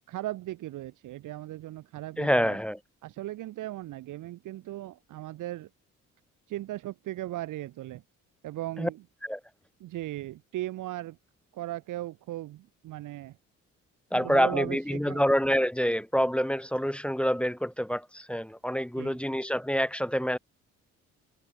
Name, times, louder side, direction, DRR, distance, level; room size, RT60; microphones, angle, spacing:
voice 1, 0.1-2.6 3.0-5.7 6.5-8.0 8.4-9.0 9.8-11.2 11.5-13.4 14.1-15.3 19.0-19.2, right 15 dB, 85° right, 4.5 m, -37 dB
voice 2, 2.2-2.8 8.8-8.9 9.2-9.4 14.1-20.4, equal, 5° left, 1.3 m, -27 dB
cardioid pair, 90°, 30 cm